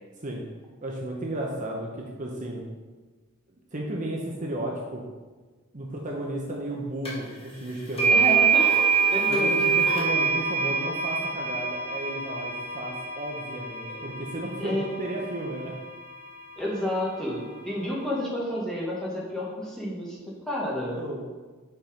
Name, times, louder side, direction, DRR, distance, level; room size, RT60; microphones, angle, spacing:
voice 1, 0.8-2.6 3.7-5.0 5.7-8.2 9.3-15.8 20.7-21.3, right 1 dB, 35° right, -1 dB, 0.9 m, -34 dB
sound 1, 7.1-7.2 8.0-16.0, right 5 dB, 25° left, 1.6 m, -25 dB
voice 2, 8.1-8.7 9.1-9.6 13.9-14.0 14.6-14.9 16.6-21.0, equal, 5° left, -5 dB, 1.6 m, -30 dB
6.1 x 5.8 x 5.2 m, 1.3 s
head